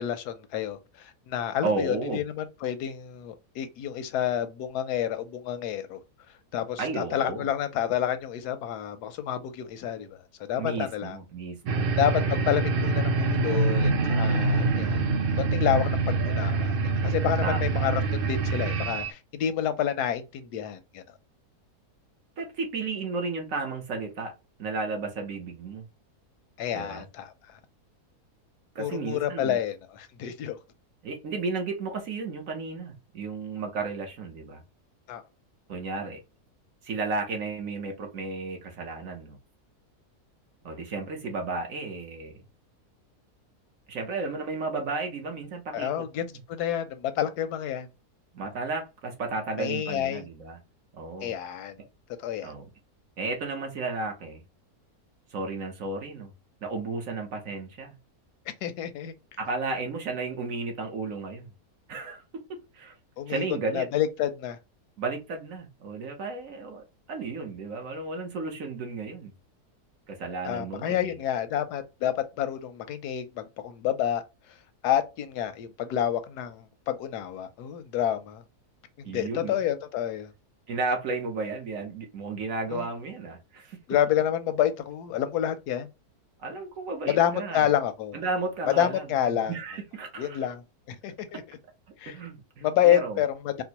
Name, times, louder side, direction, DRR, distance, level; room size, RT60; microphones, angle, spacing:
voice 1, 0.0-6.0 6.5-10.2 10.5-11.2 12.0-15.0 15.4-21.0 26.6-27.3 28.8-30.6 35.1-35.2 45.7-46.2 46.5-47.9 49.6-50.2 51.2-51.8 52.2-52.5 58.6-59.1 63.2-63.4 63.7-64.6 70.5-74.2 74.8-78.4 79.1-80.3 82.7-82.9 83.9-85.9 87.1-88.2 88.8-89.5 90.2-90.6 90.9-91.6 92.0-92.1 92.6-93.6, left 10 dB, 85° left, 1.2 m, -29 dB
voice 2, 1.6-2.2 6.8-7.4 10.6-12.2 17.4-17.9 22.4-24.3 24.6-25.9 26.7-27.0 28.7-29.6 31.0-34.6 35.7-36.2 36.8-39.4 40.6-42.4 43.9-46.4 48.3-50.6 50.9-51.3 52.4-52.7 53.2-54.4 55.3-56.3 56.6-58.0 59.4-61.5 61.9-62.4 62.7-62.9 63.3-63.9 65.0-69.3 70.1-71.2 79.0-79.6 80.7-83.8 86.4-87.7 88.1-90.5 92.1-93.2, right 3 dB, 60° right, 1.2 m, -33 dB
sound 1, 11.7-19.1, right 3 dB, 85° right, 0.4 m, -25 dB
4.4 x 2.1 x 2.8 m
omnidirectional pair, 1.7 m